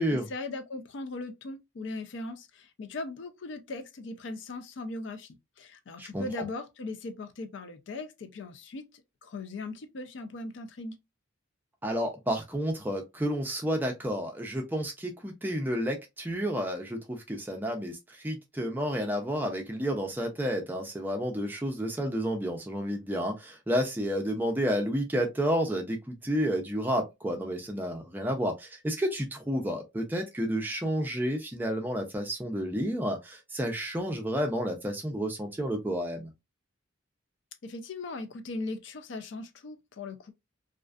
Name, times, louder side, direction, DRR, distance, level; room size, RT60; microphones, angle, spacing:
voice 1, 0.1-11.0 37.6-40.3, left 2 dB, 60° left, 0.4 m, -39 dB
voice 2, 6.0-6.5 11.8-36.3, equal, 10° right, 0.4 m, -31 dB
2.4 x 2.3 x 2.3 m
head